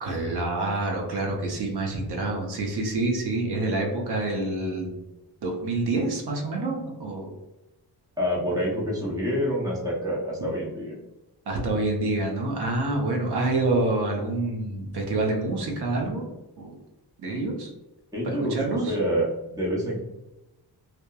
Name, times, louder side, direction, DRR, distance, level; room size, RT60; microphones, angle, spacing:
voice 1, 0.0-4.9 5.4-7.3 11.5-16.2 16.6-16.7 17.2-17.7 18.2-18.9, right 2 dB, 70° right, 1 dB, 0.7 m, -27 dB
voice 2, 8.2-10.9 18.1-20.0, equal, 10° right, -5 dB, 0.6 m, -27 dB
2.9 x 2.1 x 2.2 m, 0.97 s
wide cardioid pair, 175°, 40 cm